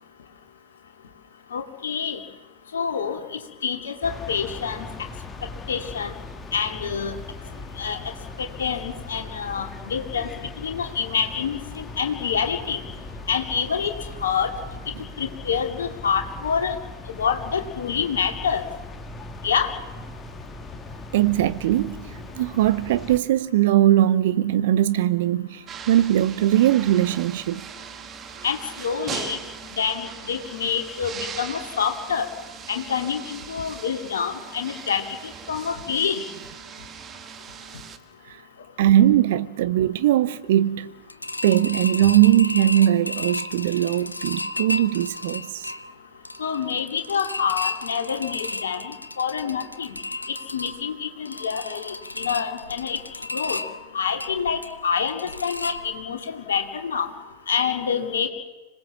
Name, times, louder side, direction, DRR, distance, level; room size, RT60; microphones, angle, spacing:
voice 1, 1.5-2.2 2.7-4.9 5.7-6.1 6.5-7.1 7.8-8.0 8.4-10.3 10.6-12.8 13.3-13.9 14.2-14.5 15.2-16.7 17.2-18.6 19.4-19.7 28.4-29.4 29.8-32.3 32.7-35.0 35.5-36.2 46.4-49.9 50.5-53.0 53.3-53.6 53.9-57.1 57.5-58.3, left 7 dB, 65° left, 2.5 m, -27 dB
sound 1, 4.0-23.2, left 3 dB, 15° left, 1.8 m, -39 dB
voice 2, 21.1-27.7 38.8-40.9 41.4-45.7, right 12 dB, 55° right, 1.0 m, -20 dB
sound 2, 25.7-38.0, right 7 dB, 25° right, 1.6 m, -39 dB
sound 3, 41.1-56.3 56.6-56.7 57.1-57.2, left 2 dB, 85° left, 0.8 m, -34 dB
26.0 x 19.0 x 7.3 m
figure-of-eight pair, 90°, 0 cm